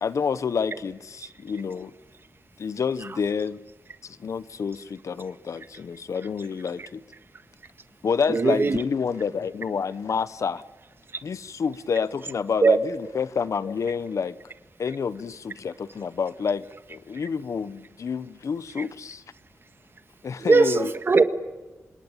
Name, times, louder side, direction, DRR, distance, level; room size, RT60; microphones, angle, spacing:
voice 1, 0.0-1.9 2.6-3.6 4.0-7.0 8.0-10.6 11.2-14.4 14.8-19.2 20.2-20.9, left 6 dB, 75° left, 1.0 m, -28 dB
voice 2, 8.3-8.8 12.6-12.8 20.4-21.2, right 4 dB, 45° right, 1.7 m, -19 dB
27.0 x 21.5 x 8.9 m
wide cardioid pair, 150°, 5 cm